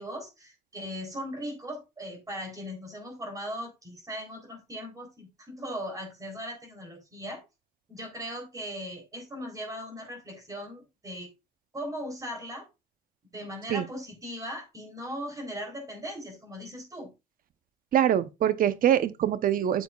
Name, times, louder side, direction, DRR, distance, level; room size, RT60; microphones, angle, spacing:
voice 1, 0.0-7.4 7.9-11.3 11.7-12.7 13.3-17.1, equal, 20° right, 3.6 m, -38 dB
voice 2, 17.9-19.8, right 10 dB, 55° right, 0.9 m, -24 dB
9.5 x 7.5 x 2.4 m
cardioid pair, 110°, 17 cm